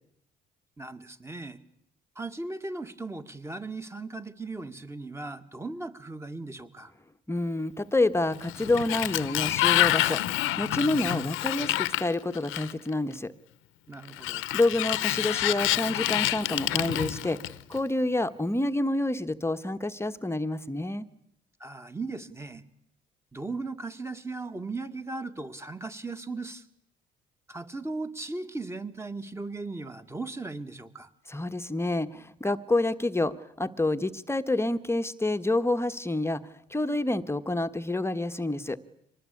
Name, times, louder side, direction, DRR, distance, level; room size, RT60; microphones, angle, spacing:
voice 1, 0.8-1.6 2.2-6.9 13.9-14.5 21.6-22.6 23.3-26.6 27.5-31.1, right 3 dB, 15° right, 8 dB, 2.1 m, -37 dB
voice 2, 7.3-13.3 14.5-17.4 17.7-21.0 31.3-36.4 36.7-38.8, left 2 dB, 10° left, 9 dB, 1.3 m, -28 dB
Sliding door, 8.3-12.9 14.1-17.8, left 16 dB, 80° left, 1.0 m, -28 dB
25.0 x 20.0 x 8.6 m, 0.76 s
supercardioid pair, 80°, 20 cm